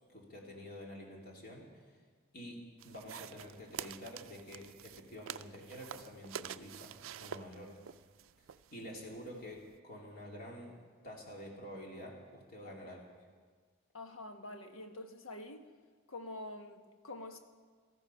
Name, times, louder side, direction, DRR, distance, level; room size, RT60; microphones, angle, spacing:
voice 1, 0.1-2.0 2.3-7.7 8.4-10.8 11.0-13.1, equal, 45° left, -1 dB, 2.8 m, -48 dB
sound 1, 2.8-9.8, right 9 dB, 75° right, 0.4 m, -48 dB
voice 2, 13.9-15.7 16.1-17.4, left 2 dB, 90° left, 6 dB, 1.3 m, -46 dB
18.0 x 14.5 x 5.6 m, 1.5 s
head